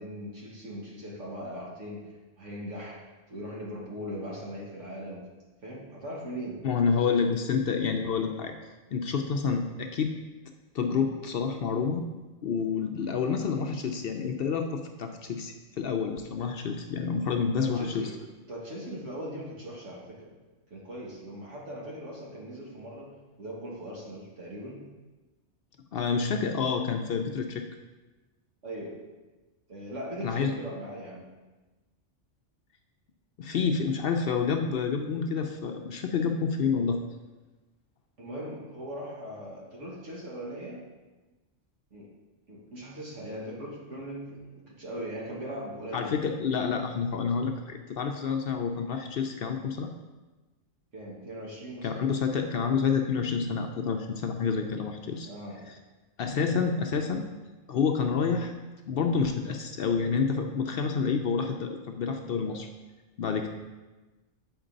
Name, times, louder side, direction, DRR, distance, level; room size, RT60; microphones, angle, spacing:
voice 1, 0.0-2.0 2.4-5.3 5.6-6.6 17.6-18.1 18.5-20.3 20.7-24.8 28.6-29.0 29.7-31.2 38.2-40.8 41.9-42.1 42.5-46.2 50.9-52.1 55.3-55.6, equal, 80° right, -3 dB, 1.9 m, -39 dB
voice 2, 6.6-8.5 8.9-10.2 10.7-12.1 12.4-18.1 25.9-27.7 30.2-30.5 33.4-37.0 45.9-49.9 51.8-55.3 55.7-55.8 56.2-57.3 57.7-58.5 58.9-62.7 63.2-63.5, left 5 dB, 60° left, 4 dB, 0.6 m, -28 dB
7.9 x 4.5 x 3.9 m, 1.2 s
omnidirectional pair, 1.3 m